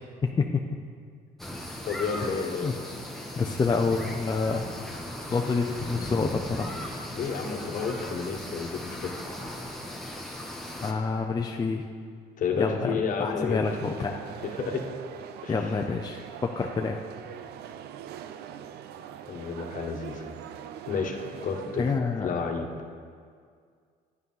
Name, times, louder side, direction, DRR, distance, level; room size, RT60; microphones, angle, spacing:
voice 1, 0.2-0.6 2.2-2.7 3.4-4.7 5.3-6.8 10.8-11.9 12.6-14.2 15.5-17.0 21.8-22.3, left 4 dB, 25° left, 2 dB, 0.6 m, -28 dB
sound 1, 1.4-10.9, left 1 dB, ahead, 1.2 m, -37 dB
voice 2, 1.8-2.7 7.1-9.1 12.4-13.6 14.4-14.8 15.4-15.7 19.3-20.3 20.9-21.9 22.2-22.7, left 5 dB, 50° left, 3 dB, 1.3 m, -31 dB
sound 2, 13.6-22.0, right 9 dB, 70° right, 0.6 m, -42 dB
9.6 x 9.2 x 5.6 m, 2.1 s
cardioid pair, 110°, 17 cm